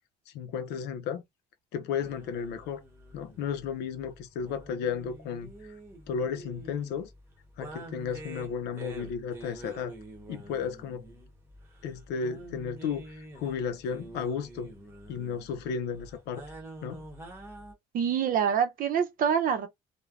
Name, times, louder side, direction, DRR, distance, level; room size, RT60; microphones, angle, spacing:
voice 1, 0.3-1.2 1.7-2.8 3.1-5.8 6.1-7.1 7.6-9.9 10.3-11.0 11.8-14.7 15.1-16.4 16.8-17.0, left 6 dB, 80° left, 0.5 m, -34 dB
sound 1, 2.0-17.7, right 1 dB, 15° right, 1.0 m, -47 dB
voice 2, 17.9-19.7, right 7 dB, 55° right, 0.6 m, -26 dB
3.2 x 2.1 x 2.4 m
cardioid pair, 110°, 17 cm